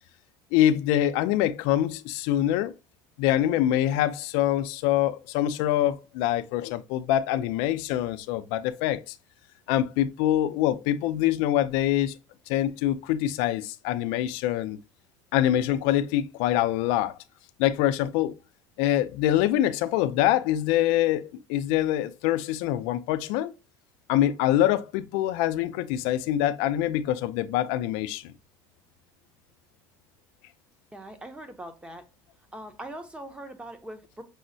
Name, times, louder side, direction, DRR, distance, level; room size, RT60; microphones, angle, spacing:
voice 1, 0.5-2.7 3.2-9.1 9.7-12.2 12.5-14.8 15.3-17.2 17.6-18.3 18.8-23.5 24.1-28.2, left 12 dB, 75° left, 0.4 m, -25 dB
voice 2, 30.9-32.0 32.5-34.2, right 1 dB, 10° right, 0.7 m, -41 dB
6.1 x 2.0 x 2.6 m
supercardioid pair, 110°, 9 cm